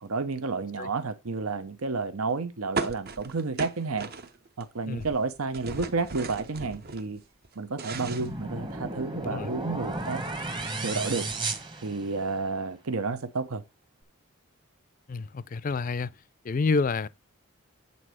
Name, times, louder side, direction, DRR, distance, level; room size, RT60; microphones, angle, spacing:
voice 1, 0.0-4.1 4.6-7.2 7.6-10.2 10.8-11.3 11.8-13.6, right 4 dB, 85° right, 0.9 m, -31 dB
sound 1, 2.8-4.6 4.9-7.0 7.4-9.0, right 3 dB, 45° right, 0.8 m, -36 dB
sound 2, 7.9-12.5, right 2 dB, 20° right, 1.0 m, -34 dB
voice 2, 15.1-16.1 16.5-17.1, left 4 dB, 40° left, 0.4 m, -28 dB
8.7 x 3.9 x 6.2 m
head